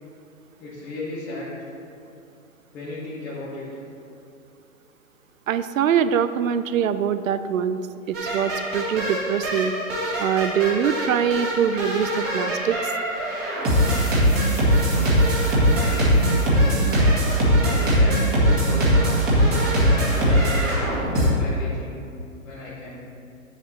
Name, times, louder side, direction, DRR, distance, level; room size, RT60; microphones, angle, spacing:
voice 1, 0.6-1.7 2.7-3.7 15.5-17.1 17.6-19.2 19.7-22.0 22.4-23.0, left 2 dB, 5° left, -10 dB, 0.4 m, -35 dB
voice 2, 5.5-7.8 8.1-9.7 10.2-12.9, right 8 dB, 70° right, 12 dB, 0.6 m, -23 dB
sound 1, 8.1-21.3, equal, 20° right, 2.0 m, -21 dB
9.0 x 7.4 x 3.1 m, 2.7 s
hypercardioid pair, 130°, 42 cm